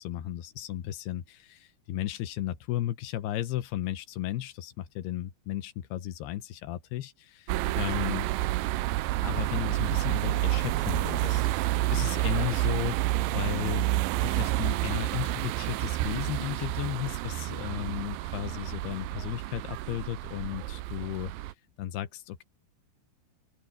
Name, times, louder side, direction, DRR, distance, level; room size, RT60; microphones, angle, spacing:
voice 1, 0.0-8.3 9.2-13.9 14.2-21.3 21.8-22.4, left 13 dB, 90° left, 3.1 m, -34 dB
sound 1, 7.5-21.5, right 16 dB, 80° right, 2.2 m, -29 dB
open air
omnidirectional pair, 4.5 m